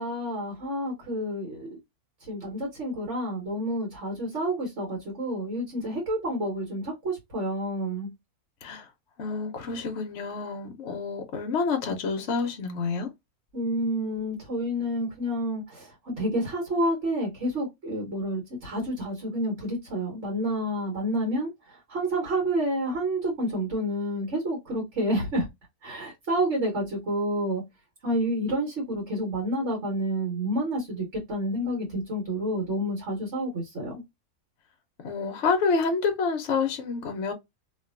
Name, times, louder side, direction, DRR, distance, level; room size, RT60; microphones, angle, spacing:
voice 1, 0.0-1.8 2.3-8.1 13.5-21.5 21.9-25.4 25.8-27.6 28.0-33.9, right 1 dB, 50° right, 1.6 m, -29 dB
voice 2, 9.2-13.1 35.0-37.3, left 4 dB, 55° left, 0.9 m, -28 dB
3.0 x 2.6 x 2.5 m
omnidirectional pair, 1.6 m